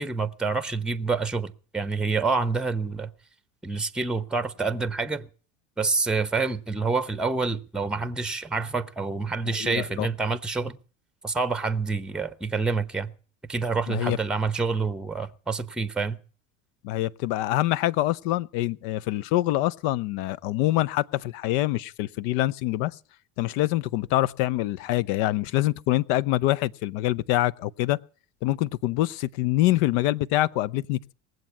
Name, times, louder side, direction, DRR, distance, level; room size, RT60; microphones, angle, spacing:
voice 1, 0.0-3.1 3.6-5.3 5.8-10.8 11.2-13.1 13.5-16.2, right 4 dB, ahead, 0.9 m, -27 dB
voice 2, 9.4-10.1 13.9-14.2 16.8-23.0 23.4-28.0 28.4-31.1, left 15 dB, 55° left, 0.7 m, -25 dB
19.5 x 7.8 x 8.2 m
hypercardioid pair, 70°, 40 cm